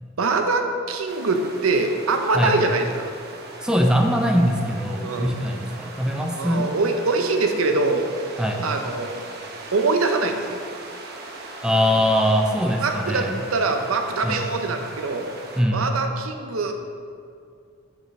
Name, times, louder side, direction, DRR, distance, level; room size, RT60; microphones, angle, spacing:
voice 1, 0.2-3.1 5.0-5.4 6.3-8.1 8.6-9.3 9.7-10.6 12.8-15.3 15.7-16.7, right 3 dB, 80° right, 5 dB, 0.7 m, -23 dB
sound 1, 1.1-15.6, right 2 dB, 50° right, 0.8 m, -39 dB
voice 2, 3.6-6.7 8.4-8.7 11.6-13.3 14.2-14.4 15.6-15.9, equal, 5° right, 1 dB, 0.5 m, -22 dB
8.0 x 6.1 x 3.1 m, 2.3 s
head